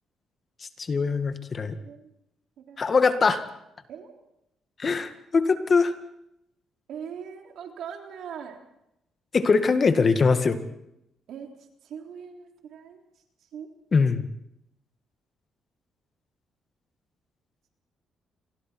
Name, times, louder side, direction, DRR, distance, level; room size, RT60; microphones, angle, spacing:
voice 1, 0.8-1.8 2.8-3.4 4.8-5.9 9.3-10.6 13.9-14.2, left 4 dB, 40° left, 9 dB, 1.9 m, -22 dB
voice 2, 2.6-2.9 3.9-4.1 6.9-8.6 11.3-11.5 11.8-13.0 13.4-13.7, right 7 dB, 75° right, 3 dB, 3.5 m, -40 dB
27.5 x 21.0 x 4.5 m, 0.82 s
cardioid pair, 90°, 0 cm